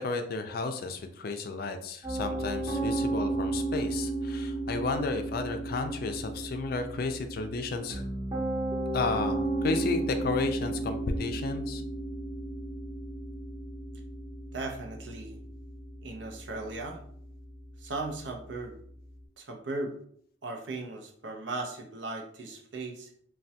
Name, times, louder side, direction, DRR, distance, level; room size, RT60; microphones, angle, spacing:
voice 1, 0.0-8.0 8.9-11.8, left 3 dB, 55° left, 7 dB, 0.4 m, -32 dB
Piano, 2.0-19.2, right 2 dB, 30° right, 0.8 m, -34 dB
voice 2, 14.5-15.4 16.0-17.0 17.8-18.8 19.4-20.0 20.4-23.1, right 2 dB, 75° right, 3 dB, 0.6 m, -37 dB
3.2 x 2.2 x 2.7 m, 0.63 s
head